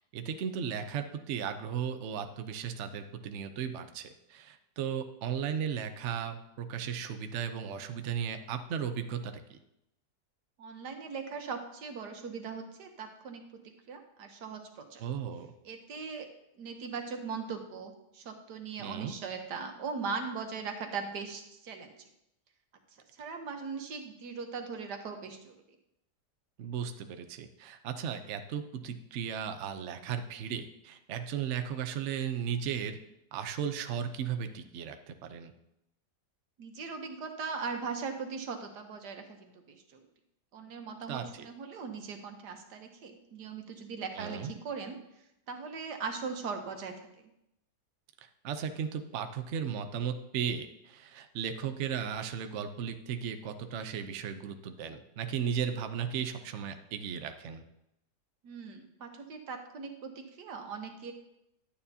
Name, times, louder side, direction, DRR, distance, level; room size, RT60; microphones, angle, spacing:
voice 1, 0.1-9.6 15.0-15.5 18.8-19.1 26.6-33.0 33.3-35.5 41.1-41.5 44.1-44.5 48.4-57.6, right 8 dB, 60° right, 8 dB, 0.8 m, -36 dB
voice 2, 10.6-13.4 13.9-15.0 15.6-16.3 16.6-21.9 23.2-25.6 36.6-40.1 40.5-45.0 45.5-47.1 58.4-61.1, right 5 dB, 75° right, 5 dB, 1.6 m, -39 dB
11.5 x 9.1 x 2.8 m, 0.84 s
omnidirectional pair, 1.8 m